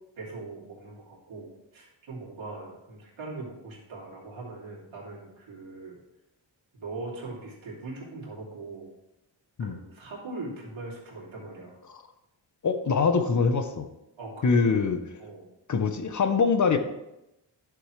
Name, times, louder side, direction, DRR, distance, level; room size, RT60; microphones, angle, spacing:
voice 1, 0.2-6.0 6.7-8.9 9.6-11.8 14.2-14.7 15.2-15.5, right 3 dB, 85° right, -4 dB, 2.9 m, -41 dB
voice 2, 12.6-13.9 14.4-15.0 15.7-16.8, left 5 dB, 40° left, 8 dB, 0.7 m, -23 dB
11.0 x 7.0 x 3.2 m, 0.90 s
wide cardioid pair, 145°, 46 cm